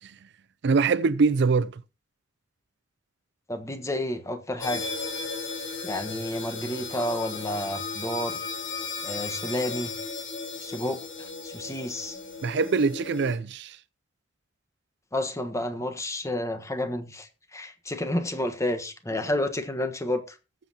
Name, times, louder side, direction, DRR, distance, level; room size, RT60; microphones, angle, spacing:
voice 1, 0.6-1.8 12.4-13.8, right 4 dB, 65° right, 0.5 m, -23 dB
voice 2, 3.5-4.9 5.8-8.4 9.0-10.0 10.6-12.2 15.1-20.4, left 1 dB, 15° left, 1.3 m, -30 dB
sound 1, 4.6-13.4, left 4 dB, 80° left, 4.2 m, -35 dB
20.0 x 7.7 x 2.9 m
head